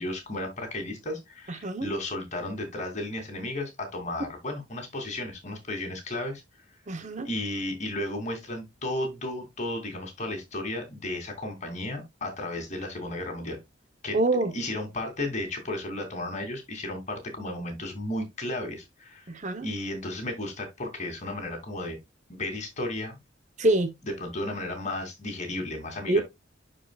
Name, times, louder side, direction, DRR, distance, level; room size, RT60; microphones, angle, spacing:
voice 1, 0.0-6.4 7.2-13.6 14.0-14.2 14.5-22.0 22.3-23.2 24.0-26.2, left 1 dB, 40° left, 2.9 m, -34 dB
voice 2, 6.9-7.3 14.1-14.5 19.3-19.7 23.6-23.9 26.1-26.2, right 2 dB, 40° right, 0.9 m, -25 dB
11.5 x 4.9 x 2.4 m
head